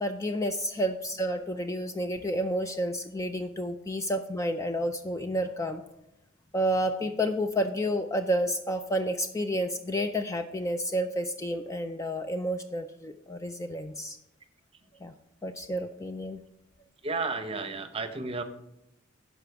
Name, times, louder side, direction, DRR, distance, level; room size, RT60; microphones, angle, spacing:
voice 1, 0.0-5.8 6.5-14.2 15.0-15.1 15.4-16.4, equal, 15° left, 7 dB, 0.3 m, -30 dB
voice 2, 17.0-18.4, right 3 dB, 25° right, 8 dB, 0.8 m, -32 dB
12.0 x 5.0 x 4.7 m, 0.87 s
head